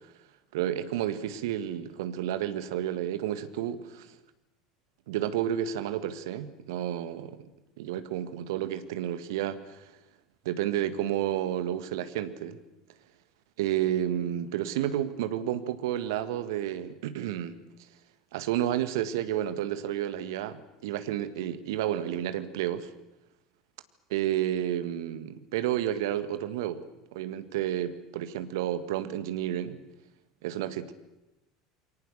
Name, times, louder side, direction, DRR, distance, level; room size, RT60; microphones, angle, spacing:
voice 1, 0.5-4.2 5.1-7.5 7.8-9.9 10.5-12.6 13.6-17.6 18.3-22.9 24.1-26.8 27.1-29.8 30.4-30.9, right 11 dB, 65° right, 11 dB, 1.8 m, -31 dB
28.5 x 23.0 x 6.7 m, 0.98 s
figure-of-eight pair, 70°, 2 cm